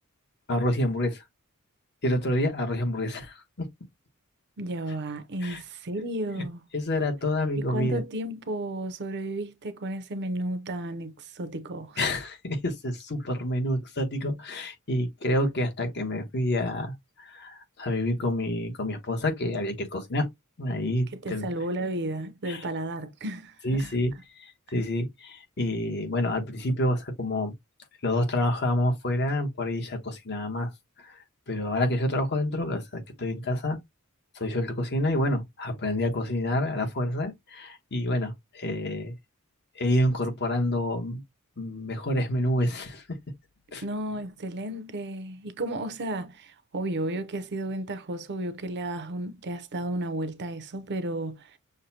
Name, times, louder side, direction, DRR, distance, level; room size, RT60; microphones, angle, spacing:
voice 1, 0.5-1.2 2.0-3.7 5.4-5.6 6.7-8.0 12.0-20.3 20.6-21.7 22.5-22.6 23.6-24.1 24.4-27.5 28.0-30.7 31.0-31.2 31.5-33.8 34.3-39.1 39.7-41.2 41.6-43.2 43.7-43.8, left 1 dB, 50° left, 1.1 m, -28 dB
voice 2, 4.6-6.6 7.6-12.0 21.1-23.9 43.8-51.6, right 1 dB, 50° right, 0.6 m, -33 dB
6.4 x 2.2 x 2.7 m
head